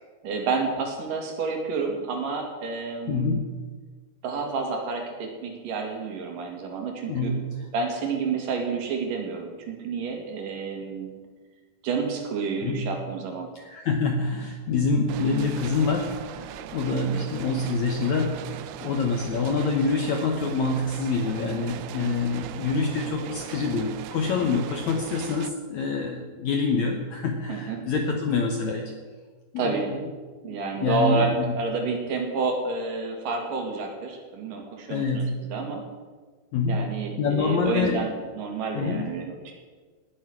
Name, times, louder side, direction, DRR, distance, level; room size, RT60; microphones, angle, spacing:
voice 1, 0.2-3.4 4.2-7.3 7.7-11.1 11.8-13.5 16.9-17.2 27.5-27.8 29.6-29.9 30.4-35.8 36.7-39.5, right 4 dB, 60° right, 2 dB, 3.3 m, -29 dB
voice 2, 3.1-3.4 7.1-7.5 12.6-12.8 13.5-18.4 18.8-28.9 29.5-30.0 30.4-31.5 34.9-35.3 36.5-36.8 37.2-38.0 38.7-39.1, left 4 dB, 80° left, 3 dB, 1.6 m, -26 dB
sound 1, 15.1-25.5, right 10 dB, 80° right, 2.4 m, -39 dB
19.5 x 7.2 x 6.1 m, 1.4 s
omnidirectional pair, 4.7 m